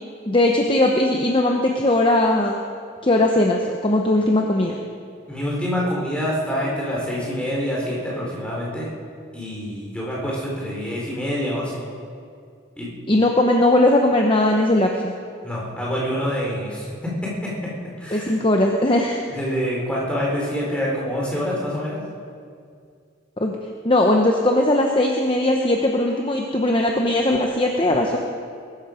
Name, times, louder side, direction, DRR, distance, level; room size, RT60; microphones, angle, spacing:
voice 1, 0.3-2.6 3.0-4.7 13.1-15.1 18.1-19.2 23.4-23.6 23.8-28.2, left 1 dB, 25° left, 1 dB, 0.9 m, -19 dB
voice 2, 5.3-8.9 9.3-11.8 12.8-12.9 15.4-17.7 18.0-18.4 19.3-22.0, equal, 5° left, -5 dB, 3.9 m, -26 dB
21.5 x 12.5 x 5.1 m, 2.3 s
head